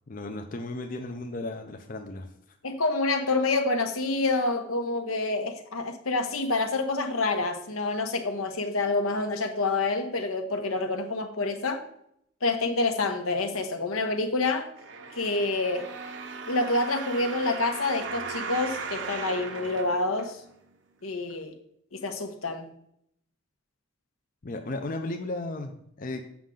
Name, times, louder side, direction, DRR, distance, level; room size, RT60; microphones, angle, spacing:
voice 1, 0.1-2.3 24.4-26.2, left 2 dB, 40° left, 5 dB, 0.5 m, -35 dB
voice 2, 2.6-11.8 12.4-14.7 15.2-15.9 16.5-20.4 21.0-21.5 21.9-22.7, left 3 dB, 80° left, 6 dB, 1.0 m, -27 dB
sound 1, 14.8-20.7 21.3-21.4, right 4 dB, 60° right, 0.8 m, -37 dB
7.2 x 6.2 x 3.8 m, 0.72 s
head